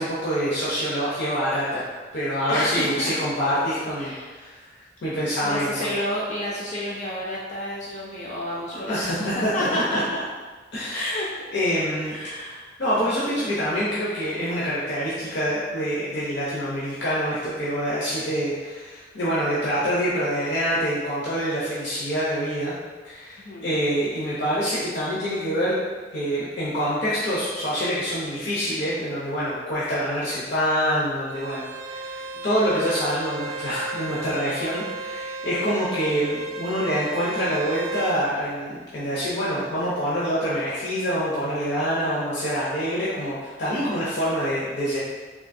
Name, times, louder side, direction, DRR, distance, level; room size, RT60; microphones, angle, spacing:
voice 1, 0.0-4.7 5.0-5.9 8.7-9.7 10.7-11.3 11.5-12.1 12.8-22.7 23.0-25.8 26.1-45.0, equal, 70° left, -9 dB, 0.7 m, -26 dB
voice 2, 2.5-3.1 4.0-4.3 5.4-10.2 10.9-11.4 12.0-12.7 23.4-23.7 32.4-32.5, left 1 dB, 40° left, -5 dB, 0.4 m, -30 dB
Bowed string instrument, 31.3-38.2, right 3 dB, 45° right, 0.3 m, -34 dB
3.6 x 2.7 x 2.5 m, 1.3 s
head